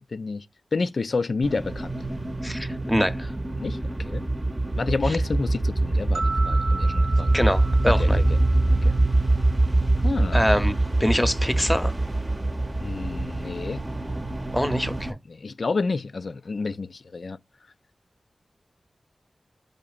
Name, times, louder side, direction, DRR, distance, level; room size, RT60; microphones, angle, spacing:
voice 1, 0.1-0.5 0.7-2.0 3.6-4.2 4.8-7.3 7.9-8.4 8.8-9.0 10.0-10.4 12.8-13.8 15.3-17.4, left 4 dB, 70° left, 0.3 m, -29 dB
sound 1, 1.4-15.1, right 2 dB, 35° right, 0.7 m, -24 dB
voice 2, 2.4-3.3 5.1-5.2 7.3-8.2 10.3-11.9 14.5-15.2, equal, 10° left, 0.7 m, -24 dB
sound 2, 6.1-9.3, right 3 dB, 75° right, 0.6 m, -34 dB
5.0 x 2.8 x 2.3 m
cardioid pair, 50°, 0 cm